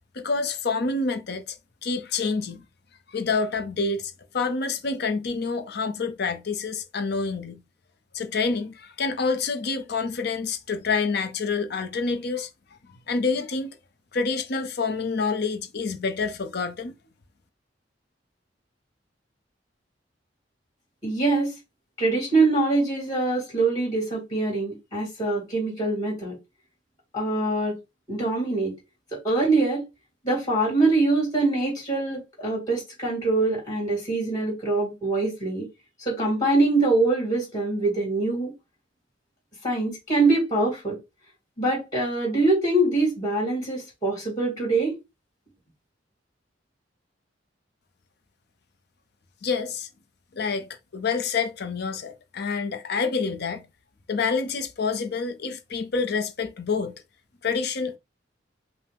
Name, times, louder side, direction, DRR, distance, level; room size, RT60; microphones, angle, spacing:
voice 1, 0.1-1.6 1.8-2.6 3.1-7.6 8.1-12.5 13.1-13.8 14.1-16.9 49.4-49.9 50.3-53.7 54.1-56.9 57.4-58.0, left 4 dB, 60° left, 0.6 m, -27 dB
voice 2, 21.0-21.5 22.0-26.3 27.1-27.8 28.1-28.7 29.2-29.8 30.2-35.7 36.0-38.5 39.6-41.0 41.6-44.9, right 2 dB, 20° left, 2.6 m, -24 dB
5.5 x 2.1 x 3.4 m
head